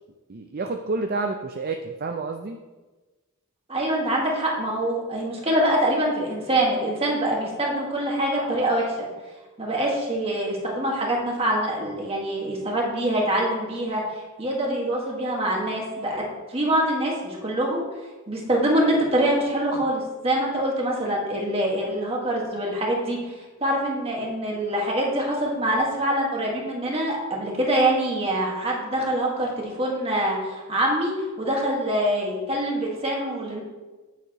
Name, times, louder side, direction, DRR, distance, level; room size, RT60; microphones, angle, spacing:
voice 1, 0.3-2.6, right 3 dB, 45° right, 5 dB, 0.5 m, -29 dB
voice 2, 3.7-9.1 9.6-14.0 14.4-17.9 18.3-33.6, right 1 dB, 25° right, -2 dB, 1.7 m, -25 dB
sound 1, 8.3-8.9, left 1 dB, 85° left, 1.9 m, -41 dB
9.4 x 8.2 x 3.0 m, 1.2 s
head